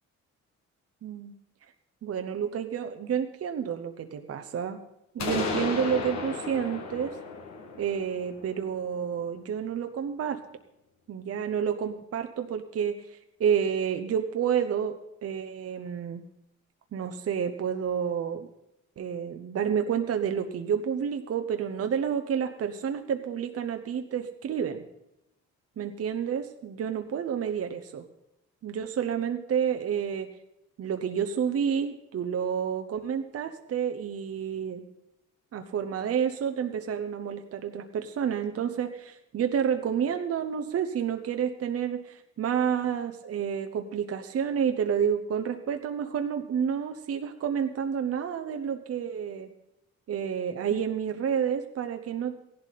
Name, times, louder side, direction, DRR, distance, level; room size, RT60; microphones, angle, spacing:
voice 1, 1.0-1.3 2.0-4.8 5.1-7.2 7.8-10.4 11.1-15.0 15.2-16.2 16.9-18.5 19.0-24.8 25.8-28.1 28.6-30.3 30.8-34.8 35.5-49.5 50.1-52.3, right 8 dB, 50° right, 7 dB, 0.9 m, -29 dB
sound 1, 5.2-9.0, left 4 dB, 65° left, 2.1 m, -34 dB
15.5 x 11.5 x 4.2 m, 0.87 s
cardioid pair, 90°, 30 cm